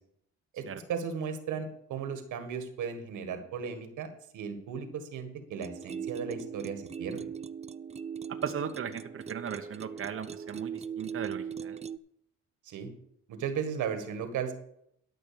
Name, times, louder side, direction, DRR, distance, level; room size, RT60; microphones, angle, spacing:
voice 1, 0.5-4.1 4.3-7.3 12.7-12.9 13.3-14.5, right 6 dB, 80° right, 8 dB, 1.8 m, -36 dB
sound 1, 5.6-12.0, right 7 dB, 20° right, 0.4 m, -39 dB
voice 2, 8.4-11.8, right 7 dB, 45° right, 5 dB, 0.9 m, -37 dB
12.5 x 6.1 x 6.9 m, 0.73 s
cardioid pair, 90°, 30 cm